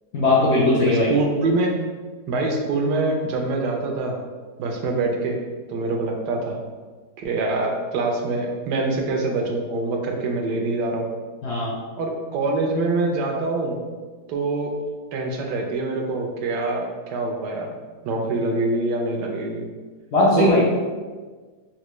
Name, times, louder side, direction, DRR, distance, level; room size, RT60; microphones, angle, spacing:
voice 1, 0.1-1.1 11.4-11.8 20.1-20.6, left 2 dB, 65° left, -5 dB, 0.6 m, -18 dB
voice 2, 0.9-1.8 2.3-4.2 4.6-5.4 5.7-6.6 7.2-11.1 12.0-13.7 14.3-14.8 15.1-17.7 18.0-19.7 20.4-20.5, right 3 dB, 90° right, 2 dB, 1.2 m, -24 dB
4.1 x 2.2 x 3.0 m, 1.4 s
omnidirectional pair, 1.8 m